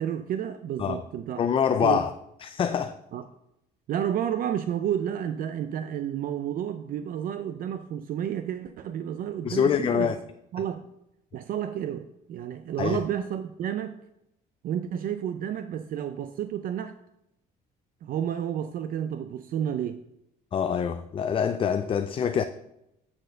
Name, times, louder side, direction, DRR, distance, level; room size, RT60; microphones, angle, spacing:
voice 1, 0.0-1.4 1.8-2.0 3.1-3.2 3.9-10.1 10.5-10.9 11.3-14.0 14.6-16.9 18.0-20.0, right 9 dB, 55° right, 10 dB, 0.5 m, -31 dB
voice 2, 1.4-2.1 2.4-3.0 9.4-10.2 12.8-13.0 20.5-22.4, left 7 dB, 30° left, 9 dB, 0.4 m, -25 dB
8.9 x 4.3 x 5.1 m, 0.83 s
cardioid pair, 110°, 17 cm